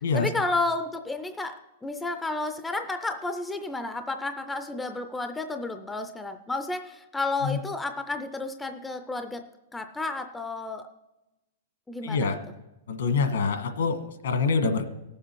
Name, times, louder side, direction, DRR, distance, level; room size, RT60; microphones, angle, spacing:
voice 1, 0.1-1.5 1.8-9.5 9.7-10.9 11.9-12.4, left 2 dB, 5° left, 7 dB, 0.4 m, -31 dB
voice 2, 12.0-12.4 12.9-14.9, left 4 dB, 75° left, 7 dB, 1.4 m, -25 dB
17.5 x 7.4 x 4.5 m, 0.97 s
supercardioid pair, 180°, 0 cm